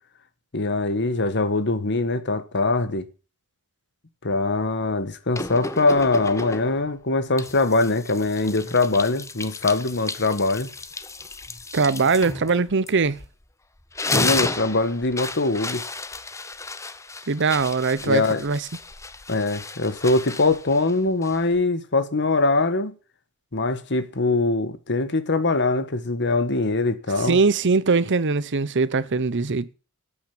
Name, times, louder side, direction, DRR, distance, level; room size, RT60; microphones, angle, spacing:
voice 1, 0.5-3.0 4.2-10.7 14.1-15.8 18.0-18.4 19.3-22.9 23.5-27.4, left 3 dB, 55° left, 1.5 m, -22 dB
sound 1, 5.3-6.9 7.4-13.4 13.8-21.6, left 3 dB, 15° left, 0.8 m, -33 dB
voice 2, 11.7-13.2 17.3-18.7 27.2-29.7, right 4 dB, 55° right, 0.8 m, -21 dB
11.5 x 8.7 x 8.7 m
head